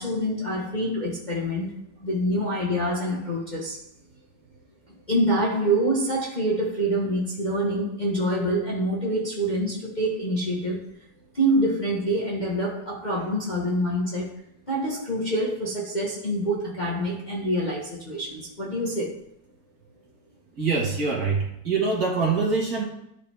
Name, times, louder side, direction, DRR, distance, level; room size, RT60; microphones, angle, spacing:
voice 1, 0.0-1.7 2.0-3.8 5.1-10.8 11.3-14.3 14.7-19.1, right 1 dB, 30° left, -5 dB, 1.1 m, -26 dB
voice 2, 20.6-22.9, right 4 dB, 50° right, -3 dB, 2.2 m, -24 dB
11.5 x 4.9 x 3.4 m, 0.78 s
omnidirectional pair, 2.1 m